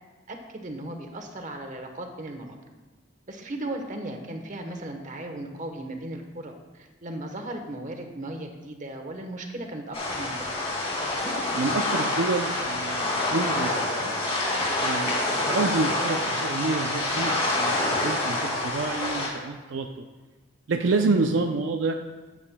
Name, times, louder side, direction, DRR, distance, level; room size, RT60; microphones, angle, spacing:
voice 1, 0.3-2.6 3.3-10.4 20.9-21.3, right 1 dB, 40° right, 4 dB, 1.0 m, -36 dB
sound 1, 9.9-19.3, left 2 dB, 30° left, 2.3 m, -27 dB
voice 2, 11.5-14.1 14.8-20.1 20.7-21.9, right 3 dB, 75° right, 4 dB, 0.5 m, -28 dB
13.0 x 8.5 x 2.2 m, 1.3 s
head